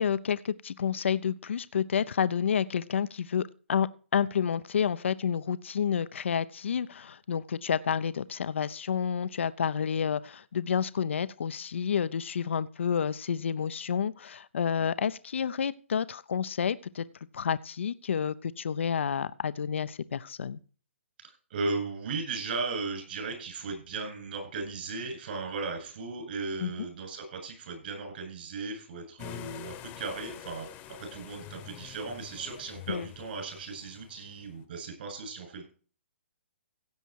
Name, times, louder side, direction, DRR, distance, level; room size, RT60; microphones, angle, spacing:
voice 1, 0.0-3.9 4.1-17.0 17.3-20.6 26.6-26.9 32.9-33.1, left 7 dB, 70° left, 15 dB, 0.7 m, -29 dB
voice 2, 21.5-30.7 31.0-35.6, right 3 dB, 50° right, 4 dB, 8.0 m, -36 dB
sound 1, 29.2-34.6, left 12 dB, 25° left, 1.2 m, -46 dB
16.0 x 8.1 x 4.7 m, 0.40 s
hypercardioid pair, 145°, 7 cm